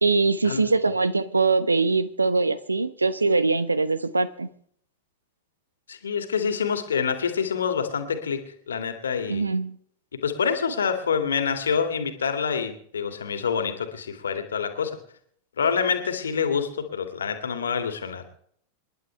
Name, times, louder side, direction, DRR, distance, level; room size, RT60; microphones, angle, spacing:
voice 1, 0.0-4.5 9.3-9.8, right 3 dB, 80° right, 16 dB, 1.0 m, -22 dB
voice 2, 5.9-9.4 10.1-15.0 15.6-18.2, left 6 dB, 70° left, 7 dB, 2.4 m, -27 dB
28.5 x 11.0 x 3.4 m, 0.64 s
figure-of-eight pair, 90°, 0 cm